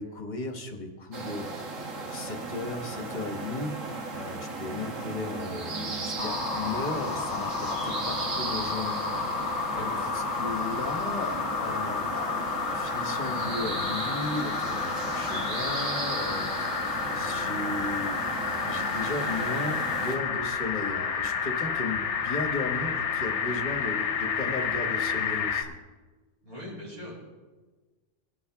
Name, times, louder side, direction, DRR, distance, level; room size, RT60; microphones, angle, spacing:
voice 1, 0.0-3.7 4.1-9.5 9.8-16.7 17.0-25.7, left 2 dB, 40° left, 4 dB, 1.3 m, -36 dB
sound 1, 1.1-20.2, right 3 dB, 80° right, 1.7 m, -36 dB
sound 2, 6.2-25.6, left 6 dB, 65° left, 1.1 m, -30 dB
voice 2, 9.7-10.1 26.4-27.1, left 1 dB, 50° right, -4 dB, 4.5 m, -41 dB
19.0 x 8.7 x 3.5 m, 1.3 s
omnidirectional pair, 1.3 m